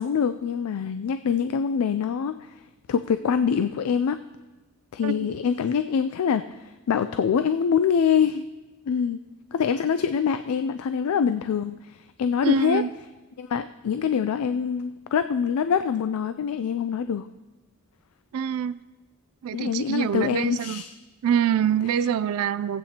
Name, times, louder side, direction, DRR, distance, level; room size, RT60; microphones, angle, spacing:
voice 1, 0.0-2.4 2.9-4.2 4.9-6.5 6.9-8.5 8.9-9.2 9.5-12.8 13.4-17.3 19.5-20.9, left 7 dB, 80° left, 11 dB, 0.4 m, -24 dB
voice 2, 12.4-12.9 18.3-18.8 19.4-20.8 21.2-22.8, right 8 dB, 75° right, 16 dB, 0.3 m, -25 dB
18.0 x 8.3 x 2.9 m, 1.1 s
head